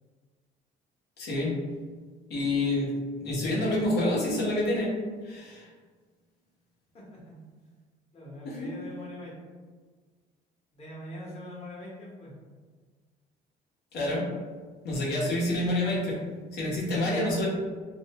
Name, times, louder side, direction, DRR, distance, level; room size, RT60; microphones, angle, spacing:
voice 1, 1.2-1.5 2.3-5.0 5.2-5.7 8.4-8.7 13.9-14.3 14.8-16.2 16.5-17.5, left 1 dB, 70° left, -5 dB, 0.9 m, -28 dB
voice 2, 6.9-7.4 8.1-9.3 10.7-12.3, left 1 dB, 35° left, -5 dB, 1.0 m, -42 dB
2.5 x 2.1 x 2.8 m, 1.5 s
cardioid pair, 110°, 17 cm